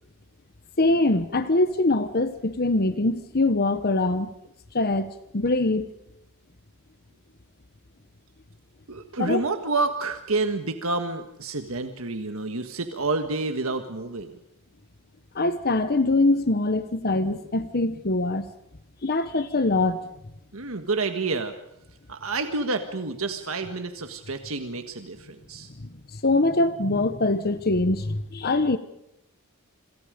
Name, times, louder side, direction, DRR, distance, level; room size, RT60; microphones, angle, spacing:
voice 1, 0.8-4.3 4.7-5.9 9.2-9.4 15.3-18.5 19.0-20.0 25.8-28.8, left 2 dB, 45° left, 1.1 m, -23 dB
voice 2, 8.9-14.4 20.5-21.5 22.1-25.7, right 3 dB, 70° right, 1.6 m, -29 dB
28.0 x 27.0 x 5.2 m
head